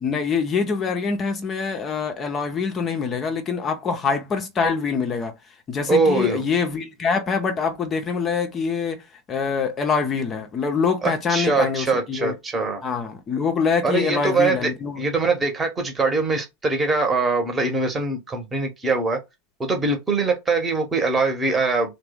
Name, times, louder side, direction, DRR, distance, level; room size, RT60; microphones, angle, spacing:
voice 1, 0.0-12.3 12.8-15.1, left 5 dB, 25° left, 0.6 m, -25 dB
voice 2, 5.9-6.4 11.0-12.8 13.8-14.7 15.0-19.2 19.6-22.0, right 3 dB, 15° right, 1.0 m, -22 dB
3.3 x 2.2 x 3.5 m
figure-of-eight pair, 90°, 0 cm